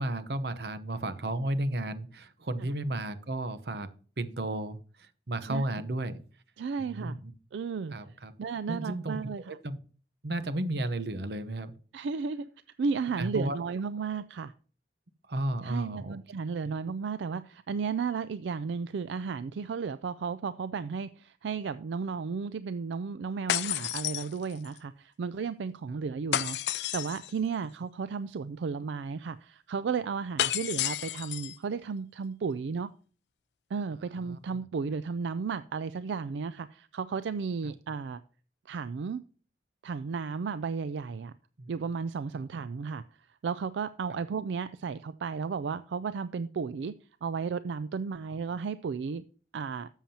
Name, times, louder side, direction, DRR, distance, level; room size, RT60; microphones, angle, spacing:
voice 1, 0.0-3.9 4.2-6.2 6.8-7.3 7.9-8.3 8.7-9.2 9.5-9.8 10.2-11.7 13.2-13.6 15.3-16.2 34.3-34.4 41.6-41.7 42.3-42.4, right 1 dB, 60° right, 12 dB, 0.9 m, -33 dB
voice 2, 6.6-7.2 7.5-7.9 8.4-9.4 11.9-12.5 12.8-14.5 15.6-26.6 26.9-32.9 33.7-38.2 38.7-39.2 39.8-41.3 41.7-43.0 43.4-46.9 47.2-49.2 49.5-49.9, right 5 dB, 80° right, 14 dB, 0.4 m, -34 dB
sound 1, 23.5-24.8 26.3-27.3 30.4-31.6, left 12 dB, 70° left, 0.4 m, -31 dB
12.5 x 7.3 x 2.8 m, 0.41 s
head